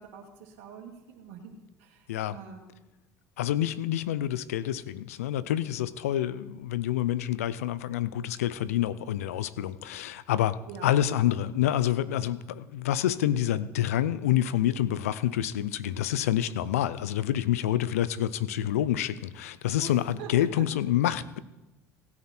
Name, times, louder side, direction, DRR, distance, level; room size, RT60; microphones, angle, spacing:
voice 1, 0.0-2.7 10.7-10.9 19.8-19.9 20.2-20.3 20.6-20.8, right 7 dB, 75° right, 0 dB, 1.8 m, -45 dB
voice 2, 3.4-21.4, left 12 dB, 90° left, 16 dB, 0.5 m, -27 dB
16.5 x 9.6 x 4.4 m, 1.0 s
hypercardioid pair, 70°, 8 cm